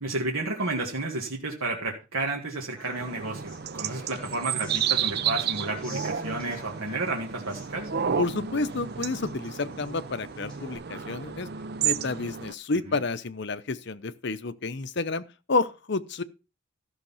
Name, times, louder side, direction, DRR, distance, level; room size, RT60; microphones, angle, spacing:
voice 1, 0.0-7.9 12.9-13.0, right 2 dB, 85° right, 1.9 m, -32 dB
Human voice / Acoustic guitar, 2.8-10.8, equal, 5° left, 6.8 m, -47 dB
sound 1, 3.0-12.5, right 8 dB, 50° right, 0.6 m, -32 dB
voice 2, 8.2-11.5 11.8-16.2, left 3 dB, 55° left, 0.7 m, -30 dB
13.5 x 6.4 x 5.7 m
head